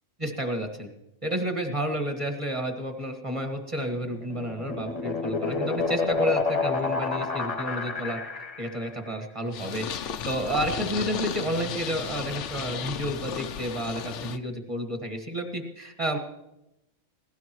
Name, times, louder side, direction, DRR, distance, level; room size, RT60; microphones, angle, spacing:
voice 1, 0.2-0.9 1.2-8.2 8.6-16.2, right 1 dB, 25° right, 3 dB, 1.8 m, -31 dB
sound 1, 4.0-8.8, left 4 dB, 30° left, 1.0 m, -29 dB
Purr, 9.5-14.4, left 8 dB, 70° left, 0.9 m, -34 dB
19.5 x 16.5 x 3.1 m, 0.87 s
omnidirectional pair, 1.4 m